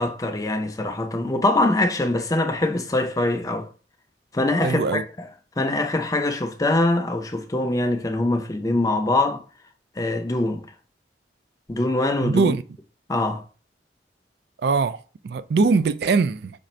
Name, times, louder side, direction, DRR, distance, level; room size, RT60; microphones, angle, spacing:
voice 1, 0.0-3.7 4.3-5.3 5.6-9.4 10.0-10.7 11.7-12.5 13.1-13.4, left 2 dB, 20° left, 0.5 m, -23 dB
voice 2, 4.6-5.0 12.2-12.6 14.6-15.0 15.2-16.5, right 4 dB, 60° right, 0.3 m, -21 dB
5.0 x 2.5 x 4.3 m
head